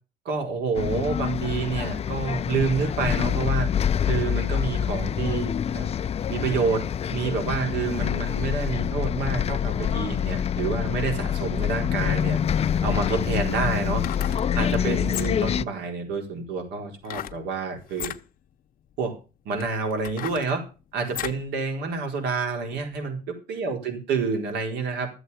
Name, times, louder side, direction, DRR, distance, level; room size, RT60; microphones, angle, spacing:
voice 1, 0.2-3.7 4.0-5.8 6.3-12.4 12.6-14.0 14.3-18.1 19.0-19.2 19.4-20.6 20.9-25.1, right 5 dB, 85° right, 3 dB, 4.4 m, -28 dB
Bus, 0.7-15.6, left 8 dB, 35° left, 0.5 m, -26 dB
sound 1, 13.8-14.5 15.0-15.6 17.0-17.4 17.9-18.2 18.9-19.0 19.6-21.5 21.9-22.0, left 12 dB, 60° left, 0.9 m, -35 dB
13.0 x 8.0 x 7.0 m, 0.33 s
cardioid pair, 110°, 17 cm